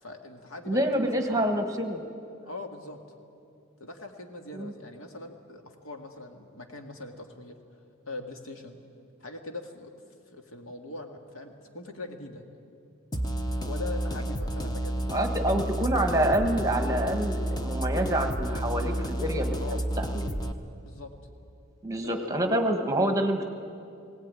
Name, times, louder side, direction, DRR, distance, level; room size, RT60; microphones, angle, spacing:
voice 1, 0.0-1.5 2.5-3.0 3.8-7.6 8.1-8.8 9.2-10.0 10.3-12.4 13.5-15.0 15.3-15.8 19.6-19.8 20.8-21.1 22.0-22.3, left 2 dB, 80° left, 4 dB, 2.0 m, -42 dB
voice 2, 0.7-2.0 4.5-4.7 15.1-20.1 21.8-23.4, right 1 dB, 15° right, 6 dB, 1.4 m, -27 dB
sound 1, 13.1-20.5, right 1 dB, 20° left, 1.0 m, -30 dB
20.0 x 17.5 x 9.7 m, 2.5 s
head